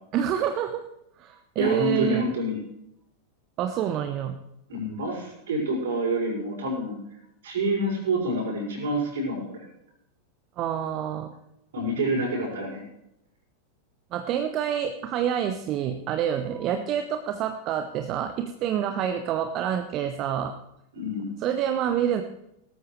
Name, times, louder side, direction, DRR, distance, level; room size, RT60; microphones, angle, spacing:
voice 1, 0.1-0.8 1.2-2.3 3.6-4.4 10.6-11.3 14.1-20.5 21.4-22.2, right 9 dB, 35° right, 8 dB, 0.9 m, -27 dB
voice 2, 1.6-2.6 4.7-7.0 7.4-9.7 11.7-12.8 20.9-21.3, right 1 dB, 60° right, 0 dB, 5.9 m, -27 dB
18.5 x 13.5 x 3.2 m, 0.81 s
figure-of-eight pair, 90°, 0 cm